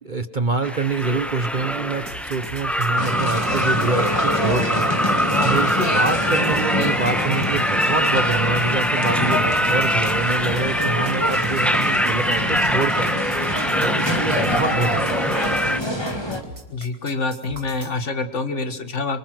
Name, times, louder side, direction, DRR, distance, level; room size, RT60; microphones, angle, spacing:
voice 1, 0.0-15.6, right 4 dB, 35° right, 11 dB, 1.1 m, -26 dB
sound 1, 0.6-15.8, equal, ahead, 1.1 m, -23 dB
sound 2, 2.1-18.0, right 2 dB, 85° right, 3.4 m, -40 dB
sound 3, 3.0-16.4, left 1 dB, 15° left, 2.3 m, -26 dB
voice 2, 16.7-19.2, left 3 dB, 50° left, 10 dB, 1.9 m, -26 dB
27.0 x 24.5 x 6.1 m, 0.85 s
omnidirectional pair, 1.6 m